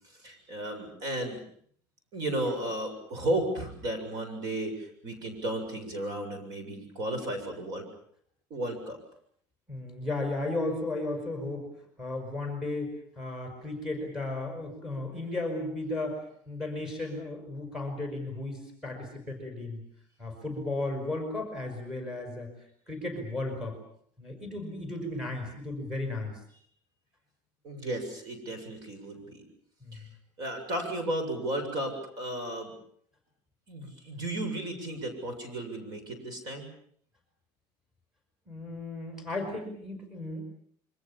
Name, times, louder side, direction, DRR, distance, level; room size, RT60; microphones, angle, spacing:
voice 1, 0.2-1.4 2.1-7.8 8.5-9.0 27.6-29.4 29.9-30.1 30.4-32.7 33.7-36.7, right 1 dB, 45° right, 7 dB, 7.2 m, -34 dB
voice 2, 9.7-11.7 12.0-19.8 20.2-22.5 22.9-23.8 24.2-26.4 29.8-30.0 38.5-40.4, left 2 dB, 5° right, 3 dB, 5.8 m, -35 dB
27.5 x 24.5 x 7.2 m, 0.62 s
cardioid pair, 155°, 9 cm